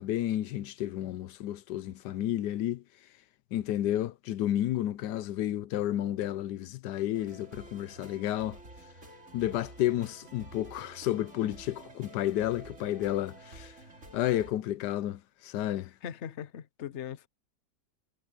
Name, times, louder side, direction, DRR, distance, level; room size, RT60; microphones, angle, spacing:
voice 1, 0.0-2.8 3.5-8.6 9.3-13.8 14.1-15.9, left 13 dB, 80° left, 1.2 m, -31 dB
sound 1, 7.1-14.5, right 2 dB, 45° right, 4.0 m, -50 dB
voice 2, 16.0-17.3, left 9 dB, 50° left, 1.1 m, -39 dB
omnidirectional pair, 1.8 m